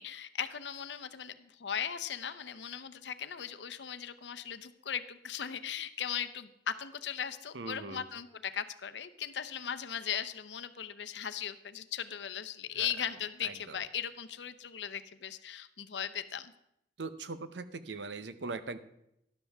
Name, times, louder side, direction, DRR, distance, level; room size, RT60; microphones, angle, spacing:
voice 1, 0.0-16.5, left 8 dB, 75° left, 11 dB, 0.7 m, -38 dB
voice 2, 7.5-8.0 12.8-12.9 13.4-13.8 17.0-18.8, right 3 dB, 80° right, 12 dB, 0.8 m, -40 dB
13.0 x 11.5 x 3.5 m, 0.81 s
head